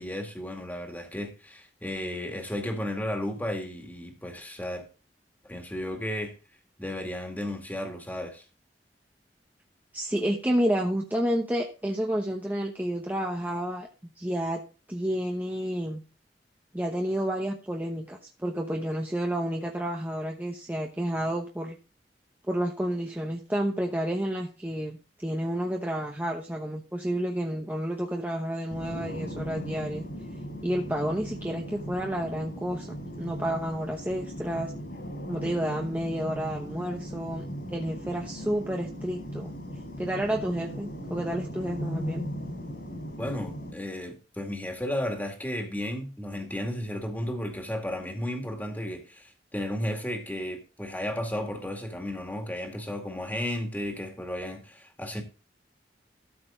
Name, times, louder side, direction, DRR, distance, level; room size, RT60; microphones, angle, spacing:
voice 1, 0.0-4.8 5.4-6.3 6.8-8.4 43.2-55.2, left 1 dB, 10° left, 2.1 m, -34 dB
voice 2, 9.9-14.6 14.9-16.0 16.7-21.8 22.5-30.1 30.6-34.7 35.3-37.4 37.7-39.5 40.0-42.2, equal, 10° right, 0.9 m, -30 dB
sound 1, 28.7-43.7, equal, 65° left, 4.4 m, -38 dB
13.0 x 6.6 x 3.8 m
head